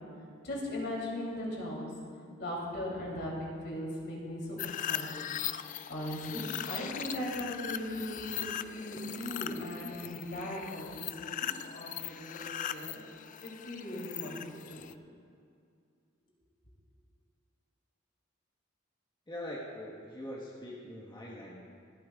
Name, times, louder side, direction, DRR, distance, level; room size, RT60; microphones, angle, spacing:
voice 1, 0.4-1.9 2.4-4.6 4.9-5.2 5.9-13.0 13.4-14.9, left 1 dB, 60° left, -3 dB, 3.0 m, -38 dB
sound 1, 4.6-14.9, left 10 dB, 40° left, 0.3 m, -40 dB
voice 2, 19.3-21.6, left 1 dB, 25° left, -6 dB, 1.4 m, -42 dB
26.0 x 8.9 x 2.4 m, 2.3 s
head